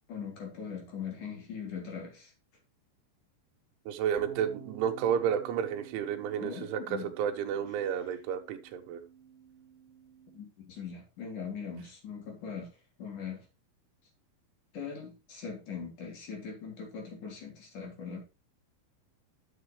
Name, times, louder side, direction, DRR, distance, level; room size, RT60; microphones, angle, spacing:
voice 1, 0.1-2.3 6.4-7.1 10.3-12.7 13.0-13.4 14.7-18.2, left 6 dB, 45° left, -1 dB, 4.3 m, -41 dB
voice 2, 3.9-9.0, right 8 dB, 85° right, 4 dB, 3.5 m, -31 dB
sound 1, 4.2-10.4, right 7 dB, 60° right, 3.2 m, -52 dB
10.5 x 7.1 x 3.3 m, 0.28 s
omnidirectional pair, 5.4 m